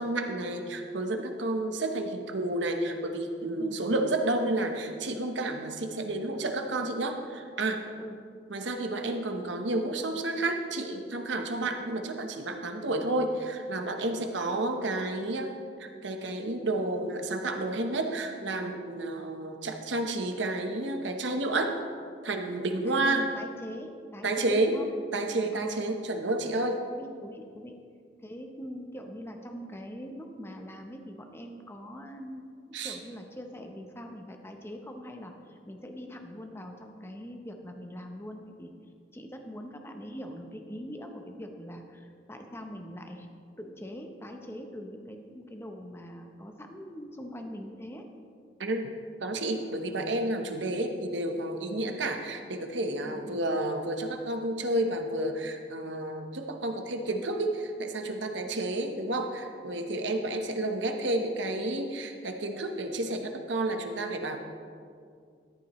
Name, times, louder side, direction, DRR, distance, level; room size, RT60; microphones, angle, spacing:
voice 1, 0.0-7.8 8.5-15.5 15.8-21.8 22.2-23.3 24.2-24.7 25.1-26.8 32.7-33.0 48.6-48.8 49.2-64.4, right 2 dB, 70° right, 4 dB, 1.0 m, -30 dB
voice 2, 14.2-14.6 22.9-24.9 25.5-26.0 27.0-27.8 28.2-38.7 39.1-43.3 43.6-48.1 51.8-51.9 53.0-53.4 58.5-58.6, equal, 15° left, 4 dB, 0.8 m, -43 dB
14.0 x 10.5 x 3.1 m, 2.2 s
head